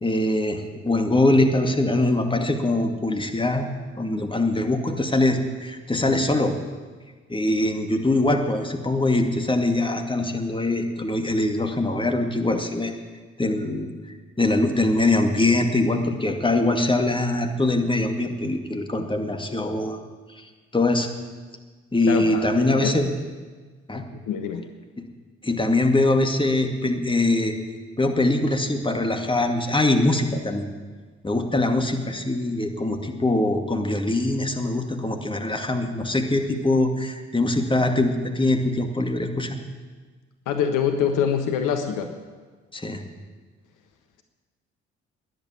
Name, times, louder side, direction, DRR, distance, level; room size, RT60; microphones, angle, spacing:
voice 1, 0.0-3.7 4.0-6.5 7.3-12.9 13.4-13.9 14.4-20.0 20.7-21.1 21.9-23.1 23.9-24.0 25.4-27.6 28.0-30.7 31.2-39.6 42.7-43.0, left 2 dB, 15° left, 4 dB, 2.2 m, -22 dB
voice 2, 22.1-22.5 22.8-22.9 23.9-24.6 40.5-42.1, left 7 dB, 65° left, 6 dB, 1.3 m, -25 dB
14.0 x 10.5 x 8.9 m, 1.4 s
figure-of-eight pair, 45°, 34 cm